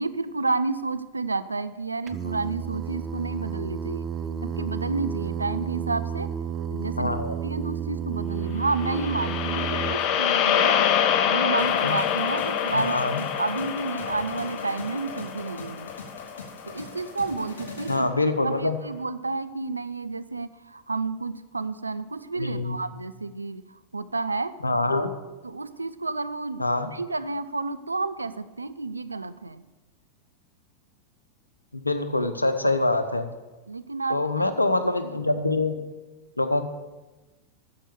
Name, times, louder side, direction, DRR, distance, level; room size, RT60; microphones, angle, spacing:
voice 1, 0.0-4.1 4.6-6.3 6.7-7.2 7.4-10.7 11.2-15.9 16.6-18.1 18.4-23.6 23.9-24.5 25.4-29.7 33.7-34.2, right 3 dB, 80° right, 13 dB, 0.4 m, -30 dB
Singing, 2.1-10.0, right 7 dB, 25° right, 0.6 m, -31 dB
voice 2, 7.0-7.4 11.8-12.0 12.7-13.2 17.9-18.8 22.3-22.8 24.6-25.1 26.6-26.9 31.7-33.3 34.1-35.7 36.4-36.6, left 2 dB, 85° left, 9 dB, 0.8 m, -25 dB
sound 1, 8.6-17.0, left 9 dB, 40° left, 0.7 m, -26 dB
sound 2, 11.6-18.0, left 4 dB, 65° left, 2.9 m, -42 dB
10.0 x 6.9 x 6.9 m, 1.2 s
figure-of-eight pair, 90°, 0 cm